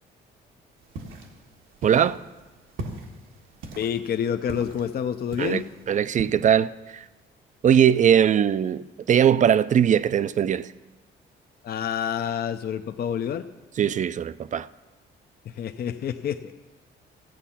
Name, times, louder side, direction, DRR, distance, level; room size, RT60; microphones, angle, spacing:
sound 1, 0.8-6.3, right 2 dB, 90° right, 1.5 m, -40 dB
voice 1, 1.8-2.2 5.4-5.6 5.9-7.1 7.6-10.7 13.8-14.7, right 9 dB, 40° right, 0.4 m, -20 dB
voice 2, 3.8-5.7 11.6-13.5 15.5-16.5, left 8 dB, 50° left, 0.6 m, -28 dB
14.5 x 8.1 x 5.8 m
cardioid pair, 90°, 20 cm